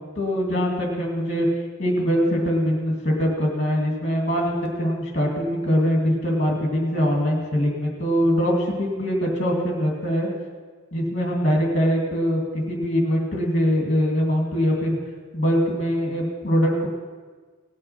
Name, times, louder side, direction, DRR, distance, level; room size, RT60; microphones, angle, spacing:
voice 1, 0.2-1.5 1.8-10.3 10.9-12.4 12.7-15.0 15.3-16.9, equal, 30° left, 0 dB, 2.3 m, -22 dB
18.5 x 6.5 x 5.8 m, 1.5 s
head